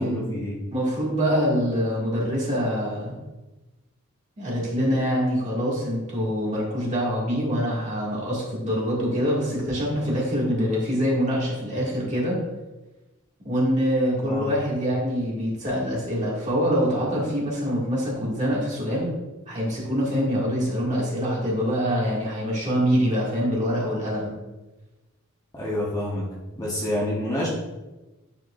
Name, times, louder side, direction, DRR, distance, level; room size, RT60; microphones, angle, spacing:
voice 1, 0.0-0.6 14.2-14.5 25.5-26.3 26.6-27.5, left 1 dB, 15° left, -6 dB, 1.1 m, -28 dB
voice 2, 0.7-3.2 4.4-12.4 13.4-19.1 19.5-24.3, equal, 35° right, -5 dB, 2.0 m, -25 dB
9.9 x 4.5 x 2.5 m, 1.1 s
head